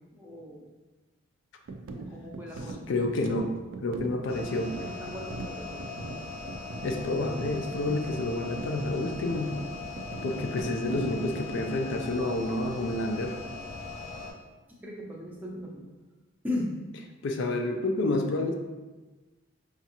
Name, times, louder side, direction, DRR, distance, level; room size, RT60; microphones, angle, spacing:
voice 1, 0.1-0.7 1.9-2.8 4.8-6.1 14.7-15.8 16.4-16.7, left 1 dB, 10° right, -3 dB, 0.5 m, -37 dB
sound 1, 1.7-11.3, right 3 dB, 65° right, 0.3 m, -41 dB
voice 2, 2.9-3.5 3.8-4.7 6.8-9.5 10.2-13.4 17.2-18.5, left 2 dB, 60° left, 4 dB, 0.3 m, -29 dB
sound 2, 4.3-14.3, left 3 dB, 85° left, 0.9 m, -40 dB
5.1 x 2.4 x 2.8 m, 1.2 s
head